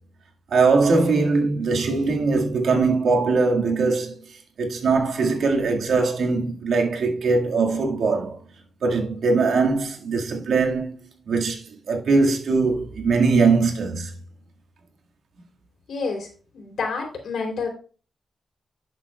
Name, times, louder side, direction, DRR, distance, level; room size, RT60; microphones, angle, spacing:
voice 1, 0.5-4.2 4.6-8.4 8.8-14.1, right 4 dB, 80° right, 1.9 m, -21 dB
voice 2, 15.9-16.3 16.5-17.7, left 4 dB, 80° left, 3.3 m, -28 dB
11.0 x 7.4 x 2.3 m
cardioid pair, 75°, 0 cm